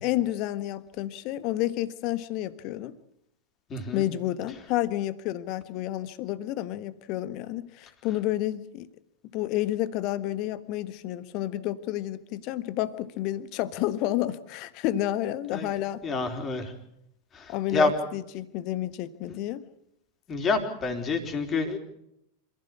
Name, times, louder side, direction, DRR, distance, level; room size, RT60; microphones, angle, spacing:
voice 1, 0.0-2.9 3.9-8.9 9.3-16.0 17.5-19.7, left 14 dB, 40° left, 14 dB, 1.5 m, -30 dB
voice 2, 3.7-4.0 15.5-15.7 16.0-16.7 17.3-17.9 20.3-21.8, left 3 dB, 25° left, 5 dB, 4.4 m, -28 dB
27.0 x 16.0 x 8.4 m, 0.79 s
figure-of-eight pair, 90°, 0 cm